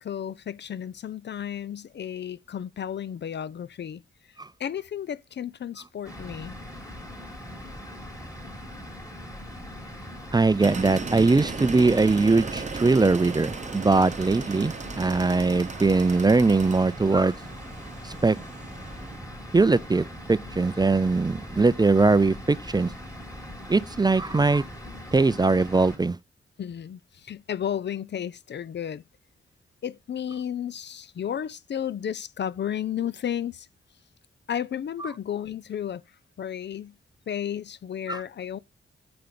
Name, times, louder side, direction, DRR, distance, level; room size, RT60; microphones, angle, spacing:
voice 1, 0.0-4.0 4.6-6.6 26.6-29.0 29.8-33.7 34.5-36.0 36.4-36.9 37.3-38.6, left 9 dB, 55° left, 0.5 m, -33 dB
sound 1, 6.0-26.0, equal, 15° left, 3.7 m, -41 dB
voice 2, 10.3-17.3 18.0-18.4 19.5-22.9 23.7-24.6 25.1-26.2 38.1-38.2, right 3 dB, 20° right, 0.4 m, -21 dB
sound 2, 10.6-19.2, right 4 dB, 35° right, 0.8 m, -37 dB
6.9 x 5.9 x 5.1 m
cardioid pair, 65°, 21 cm